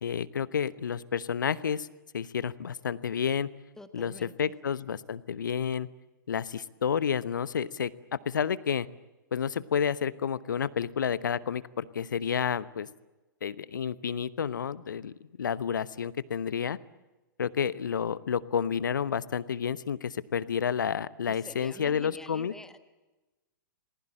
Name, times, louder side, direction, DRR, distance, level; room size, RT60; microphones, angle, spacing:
voice 1, 0.0-1.9 2.1-3.5 3.9-5.9 6.3-8.9 9.3-12.9 13.4-16.8 17.4-22.5, left 7 dB, 60° left, 18 dB, 1.0 m, -30 dB
voice 2, 3.8-4.5 21.3-22.8, left 2 dB, 5° left, 10 dB, 1.5 m, -47 dB
28.0 x 20.5 x 8.8 m, 1.1 s
figure-of-eight pair, 110°, 11 cm